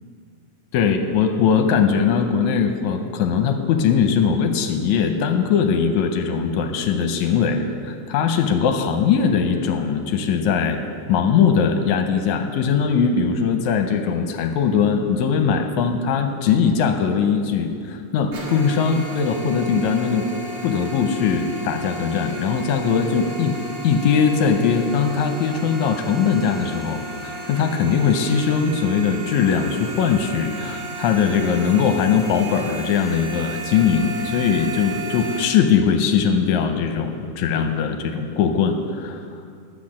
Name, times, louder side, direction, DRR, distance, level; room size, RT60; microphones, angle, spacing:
voice 1, 0.7-10.8 11.1-20.3 20.6-23.6 23.8-39.2, left 6 dB, 75° left, 6 dB, 2.0 m, -20 dB
sound 1, 18.3-35.4, right 2 dB, 85° right, 3.4 m, -34 dB
10.5 x 7.8 x 7.4 m, 2.3 s
omnidirectional pair, 3.5 m